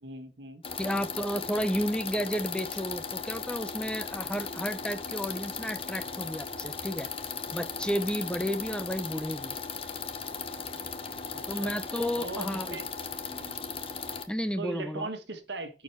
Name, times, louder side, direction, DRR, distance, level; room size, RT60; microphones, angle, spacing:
voice 1, 0.0-0.6 11.3-11.7 12.2-12.9 13.3-13.5 14.6-15.8, right 2 dB, 75° right, 1.4 m, -39 dB
sound 1, 0.6-14.2, left 5 dB, 35° left, 0.9 m, -37 dB
voice 2, 0.8-7.1 7.5-9.5 11.5-12.8 14.3-15.1, equal, 5° left, 0.6 m, -32 dB
10.0 x 4.7 x 4.5 m
head